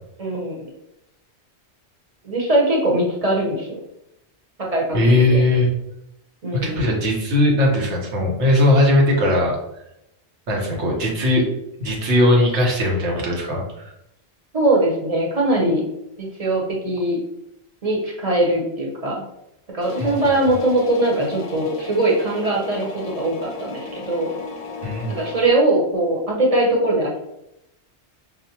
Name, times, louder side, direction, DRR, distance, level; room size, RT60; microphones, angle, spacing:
voice 1, 0.2-0.7 2.2-3.7 4.6-5.4 6.4-6.8 14.5-15.8 16.2-17.2 17.8-19.2 19.7-24.4 25.1-27.2, right 1 dB, 35° right, -2 dB, 0.9 m, -21 dB
voice 2, 4.9-5.7 6.5-9.6 10.5-11.4 11.8-13.9 20.0-20.3 24.8-25.1, left 1 dB, 85° right, -1 dB, 1.3 m, -19 dB
sound 1, 19.8-25.5, left 3 dB, 50° left, 0.4 m, -34 dB
5.4 x 2.1 x 2.8 m, 0.84 s
omnidirectional pair, 1.1 m